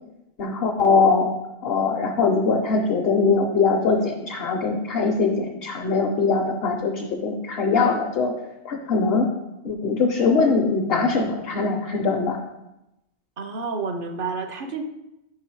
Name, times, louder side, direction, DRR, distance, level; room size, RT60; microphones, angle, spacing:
voice 1, 0.4-1.3 1.6-8.3 8.6-9.3 9.6-12.4, left 4 dB, 65° left, 2 dB, 0.9 m, -22 dB
voice 2, 13.4-14.8, right 4 dB, 60° right, 6 dB, 0.7 m, -29 dB
5.8 x 4.8 x 4.5 m, 0.90 s
omnidirectional pair, 1.2 m